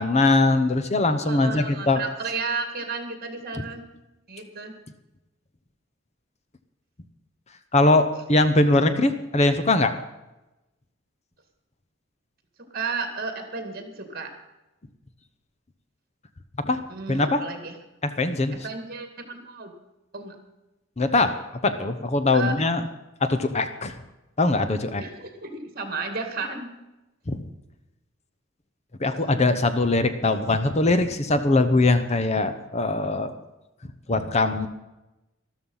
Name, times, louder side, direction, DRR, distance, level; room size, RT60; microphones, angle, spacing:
voice 1, 0.0-2.0 3.6-3.7 7.7-9.9 16.6-16.8 17.1-17.4 18.0-18.6 21.0-22.8 23.2-24.0 24.4-25.0 27.3-27.4 29.0-33.3 34.1-34.7, left 2 dB, 35° left, 10 dB, 0.9 m, -21 dB
voice 2, 1.2-3.8 4.3-4.8 12.7-14.3 16.9-17.7 18.6-19.7 20.1-20.4 22.3-22.7 25.0-26.7, right 4 dB, 45° right, 7 dB, 2.2 m, -33 dB
13.0 x 12.5 x 5.6 m, 0.99 s
head